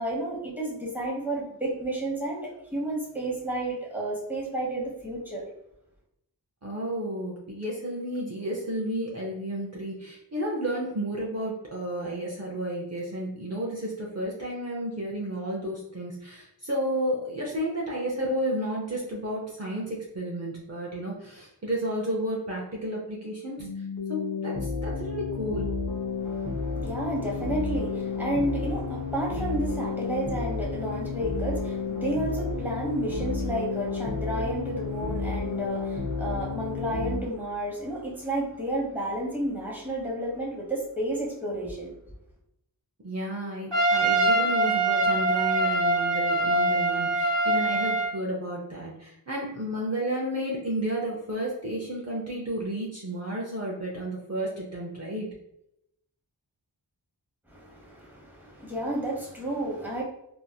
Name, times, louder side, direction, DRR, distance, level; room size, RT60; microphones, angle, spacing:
voice 1, 0.0-5.4 26.2-41.9 57.5-60.0, right 1 dB, 5° right, -4 dB, 1.0 m, -31 dB
voice 2, 6.6-23.7 24.1-25.7 43.0-55.3, right 1 dB, 40° right, -3 dB, 0.6 m, -32 dB
sound 1, 23.6-37.2, left 4 dB, 55° left, 0.8 m, -31 dB
Trumpet, 43.7-48.1, right 2 dB, 85° right, 0.9 m, -23 dB
3.0 x 2.7 x 2.2 m, 0.82 s
wide cardioid pair, 50°, 43 cm